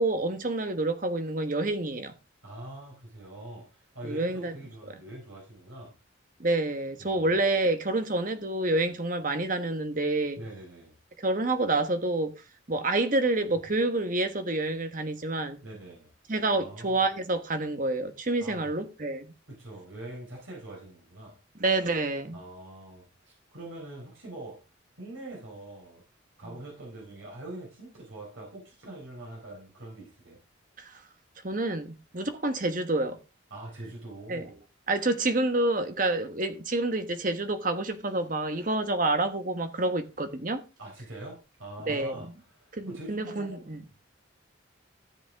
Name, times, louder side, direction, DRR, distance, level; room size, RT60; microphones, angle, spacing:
voice 1, 0.0-2.1 4.0-4.6 6.4-10.4 11.2-12.3 12.7-15.6 16.3-19.3 21.6-22.4 30.8-30.9 31.4-33.2 34.3-34.4 34.9-40.6 41.8-42.2 42.8-43.8, right 2 dB, 45° right, 1.3 m, -28 dB
voice 2, 2.4-5.9 7.0-7.4 10.4-11.0 15.6-16.1 16.5-17.0 18.4-18.8 19.5-21.4 22.3-24.6 25.0-26.0 26.4-30.4 33.5-34.6 40.8-43.7, right 1 dB, 85° right, 4.1 m, -43 dB
13.5 x 7.5 x 3.5 m
head